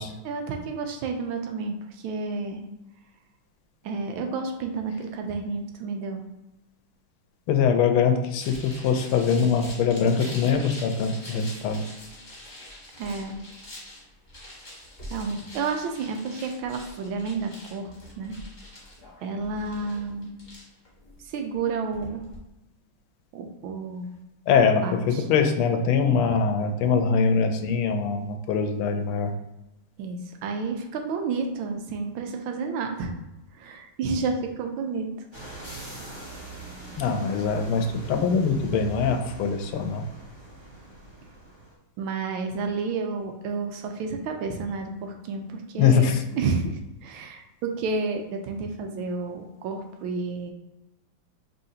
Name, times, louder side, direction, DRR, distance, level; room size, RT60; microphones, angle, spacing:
voice 1, 0.2-2.6 3.8-6.2 13.0-13.3 15.1-18.3 19.2-20.3 21.2-22.2 23.3-24.1 24.7-25.2 30.0-33.1 33.5-35.1 42.0-50.5, right 4 dB, 80° right, 4 dB, 1.4 m, -31 dB
voice 2, 7.5-11.8 24.5-29.3 35.6-35.8 37.0-40.1 45.8-46.2, left 6 dB, 85° left, 5 dB, 1.4 m, -23 dB
sound 1, 8.4-22.4, left 1 dB, 25° left, 1.2 m, -44 dB
sound 2, 35.3-41.7, right 3 dB, 20° right, 0.9 m, -42 dB
5.6 x 3.2 x 2.7 m, 0.97 s
omnidirectional pair, 2.3 m